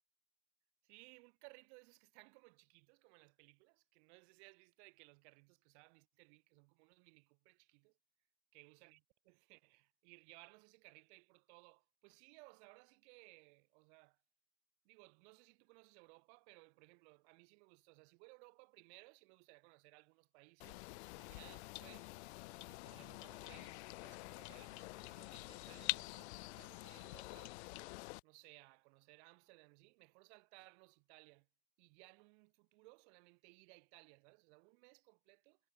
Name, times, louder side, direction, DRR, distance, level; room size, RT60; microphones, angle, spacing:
voice 1, 0.8-7.9 8.5-14.2 14.8-20.9 21.1-22.2 22.7-27.6 28.2-31.5 31.8-35.6, right 32 dB, 55° right, 4.2 m, -63 dB
sound 1, 20.6-28.2, left 24 dB, 55° left, 0.7 m, -47 dB
hypercardioid pair, 110°, 40 cm